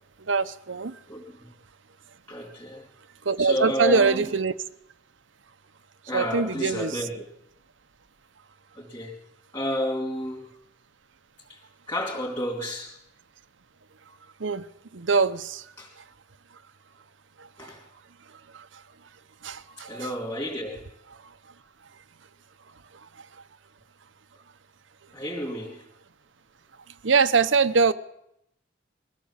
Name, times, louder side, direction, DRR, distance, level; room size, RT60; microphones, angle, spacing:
voice 1, 0.2-1.0 3.2-4.5 6.1-7.0 14.4-14.7 14.9-15.7 17.4-17.7 18.3-18.8 19.4-20.1 21.2-21.3 22.9-23.4 27.0-27.9, right 4 dB, 80° right, 11 dB, 0.9 m, -24 dB
voice 2, 1.1-1.5 2.3-2.9 3.4-4.2 6.1-7.2 8.7-9.1 9.5-10.5 11.5-11.6 11.9-13.0 15.8-15.9 17.6-17.8 19.8-20.9 25.1-25.8, left 1 dB, 20° left, -3 dB, 3.2 m, -31 dB
22.0 x 16.0 x 7.4 m, 0.78 s
head